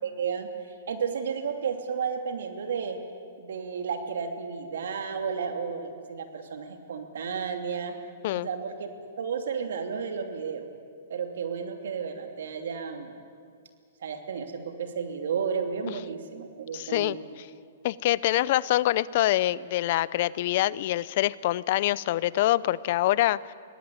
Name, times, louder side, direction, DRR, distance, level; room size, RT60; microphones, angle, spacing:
voice 1, 0.0-0.5 0.9-3.0 3.4-8.0 8.3-8.9 9.2-10.7 11.1-13.1 14.0-17.2, right 6 dB, 75° right, 5 dB, 2.8 m, -32 dB
voice 2, 16.7-17.2 17.8-23.5, left 15 dB, 55° left, 20 dB, 0.5 m, -25 dB
23.5 x 18.5 x 8.7 m, 2.1 s
hypercardioid pair, 130°, 0 cm